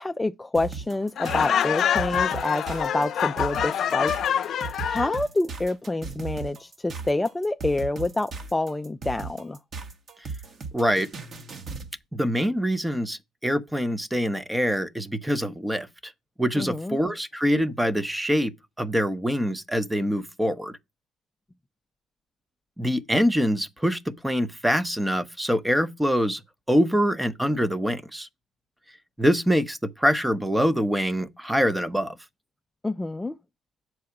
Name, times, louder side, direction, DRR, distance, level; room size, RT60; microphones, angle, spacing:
voice 1, 0.0-4.1 4.5-9.6 16.6-17.0 32.8-33.4, left 2 dB, 15° left, 0.4 m, -27 dB
sound 1, 0.5-11.9, right 4 dB, 45° right, 1.6 m, -37 dB
Laughter, 1.2-5.2, left 9 dB, 55° left, 0.7 m, -26 dB
voice 2, 10.7-11.1 12.1-16.1 16.4-18.5 18.8-20.8 22.8-26.4 26.7-28.3 29.2-32.2, equal, 5° right, 0.9 m, -24 dB
7.6 x 4.7 x 5.9 m
supercardioid pair, 75°, 0 cm